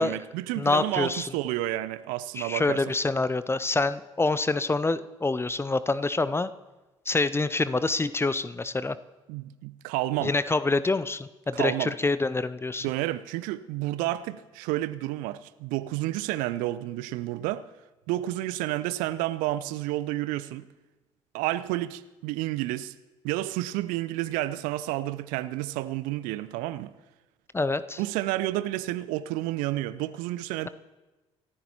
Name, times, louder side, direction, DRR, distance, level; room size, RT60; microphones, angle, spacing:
voice 1, 0.0-2.8 9.3-10.3 11.5-11.9 12.8-17.7 18.1-20.7 21.3-22.9 23.2-26.9 28.0-30.7, right 15 dB, 60° right, 0.6 m, -30 dB
voice 2, 0.6-1.3 2.4-6.5 7.1-9.0 10.2-12.9 27.5-28.0, left 3 dB, 15° left, 0.6 m, -26 dB
28.5 x 14.0 x 3.0 m
figure-of-eight pair, 50°, 16 cm